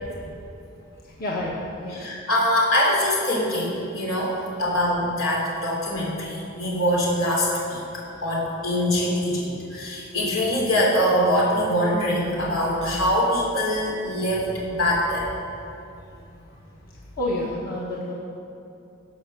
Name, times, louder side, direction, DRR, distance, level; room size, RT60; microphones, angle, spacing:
voice 1, 1.0-1.6 1.8-2.0 4.6-4.7 17.2-18.1, left 1 dB, 45° left, -5 dB, 1.5 m, -29 dB
voice 2, 1.9-4.3 4.6-7.8 8.2-15.3, equal, 85° left, -3 dB, 3.4 m, -23 dB
16.0 x 5.7 x 6.7 m, 2.7 s
head